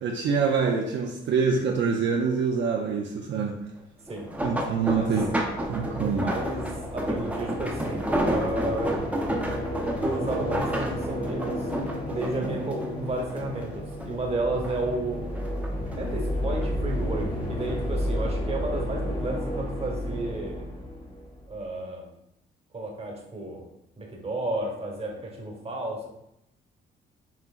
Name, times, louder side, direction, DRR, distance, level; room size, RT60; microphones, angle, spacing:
voice 1, 0.0-3.6 4.4-5.3 5.7-6.3 12.4-12.6, right 5 dB, 65° right, 1 dB, 0.5 m, -25 dB
sound 1, 4.1-13.7 14.0-15.0 15.3-16.7 17.4-17.7 18.1-18.2, equal, 5° right, 0.7 m, -31 dB
sound 2, 4.6-21.6, equal, 20° left, 1.0 m, -32 dB
voice 2, 6.0-6.6 6.9-9.0 10.0-11.7 12.1-15.2 15.9-20.6 21.5-22.1 22.7-23.6 24.0-26.1, right 2 dB, 30° right, 0 dB, 1.1 m, -32 dB
5.7 x 2.9 x 2.4 m, 0.83 s
cardioid pair, 90°, 20 cm